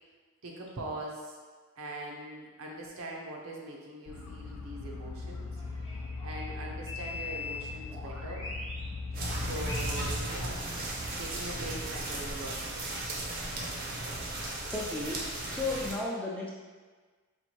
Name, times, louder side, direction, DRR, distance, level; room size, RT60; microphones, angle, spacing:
voice 1, 0.4-1.4 1.8-5.5 6.2-8.5 9.2-10.7 11.2-12.6, right 1 dB, 85° right, -1 dB, 0.6 m, -41 dB
sound 1, 4.1-10.2, left 3 dB, 65° left, 0.5 m, -40 dB
sound 2, 5.6-8.9 9.1-11.7, left 3 dB, 25° left, 0.9 m, -43 dB
sound 3, 9.1-16.0, right 2 dB, 45° right, 0.5 m, -36 dB
voice 2, 14.7-15.2 15.5-16.5, left 2 dB, 5° left, -4 dB, 0.3 m, -33 dB
4.3 x 2.5 x 2.9 m, 1.4 s
head